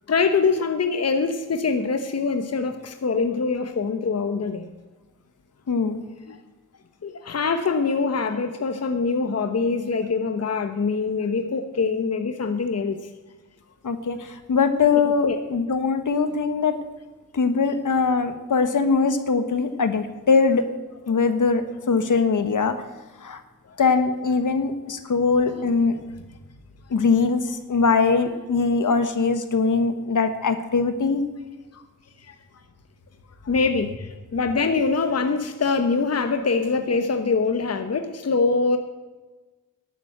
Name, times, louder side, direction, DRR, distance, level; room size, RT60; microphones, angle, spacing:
voice 1, 0.1-4.7 6.3-6.4 7.0-13.1 15.2-15.4 23.7-23.8 31.7-31.8 32.2-32.3 33.4-38.8, left 4 dB, 50° left, 8 dB, 1.0 m, -24 dB
voice 2, 5.7-6.0 13.8-16.8 17.3-20.7 21.1-22.8 23.2-23.4 23.8-26.0 26.9-27.4 27.7-31.3, left 4 dB, 70° left, 9 dB, 1.4 m, -21 dB
12.0 x 9.1 x 7.7 m, 1.2 s
wide cardioid pair, 80°, 32 cm